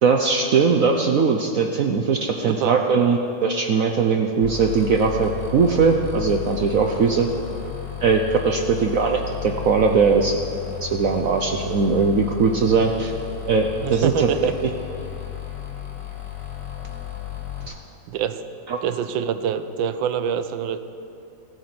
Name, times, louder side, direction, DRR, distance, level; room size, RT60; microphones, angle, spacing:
voice 1, 0.0-7.3 8.0-10.3 10.8-13.1 13.5-14.7 17.7-17.8 18.7-18.8, right 5 dB, 65° right, 3 dB, 0.8 m, -20 dB
sound 1, 4.4-17.7, left 11 dB, 30° left, 2.2 m, -34 dB
voice 2, 13.8-14.5 18.1-18.4 18.8-20.8, right 8 dB, 85° right, 11 dB, 1.4 m, -25 dB
14.5 x 9.0 x 5.9 m, 2.6 s
omnidirectional pair, 2.1 m